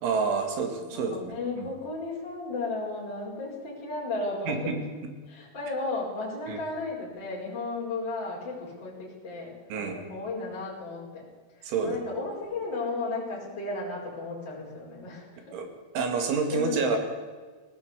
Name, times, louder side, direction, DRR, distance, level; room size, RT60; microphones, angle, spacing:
voice 1, 0.0-1.7 4.5-4.8 6.5-6.6 9.7-10.0 11.6-12.0 15.5-15.7 15.9-17.0, right 5 dB, 80° right, 5 dB, 4.8 m, -28 dB
voice 2, 0.9-4.7 5.3-11.2 11.5-15.6 16.5-17.0, left 3 dB, 25° left, -4 dB, 5.2 m, -34 dB
17.5 x 17.5 x 8.3 m, 1.4 s
omnidirectional pair, 5.4 m